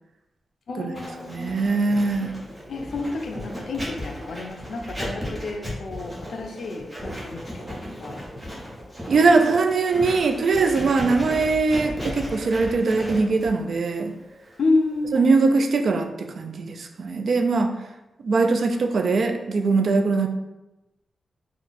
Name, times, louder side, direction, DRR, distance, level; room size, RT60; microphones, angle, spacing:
voice 1, 0.7-1.6 2.7-8.2 14.6-15.2, left 3 dB, 65° left, 3 dB, 0.5 m, -29 dB
Writing, 0.9-15.7, equal, 10° right, 1.0 m, -36 dB
voice 2, 1.3-2.4 9.1-14.1 15.1-17.7 18.2-20.3, right 3 dB, 55° right, 5 dB, 0.4 m, -21 dB
4.0 x 2.3 x 4.1 m, 1.0 s
wide cardioid pair, 165°, 0 cm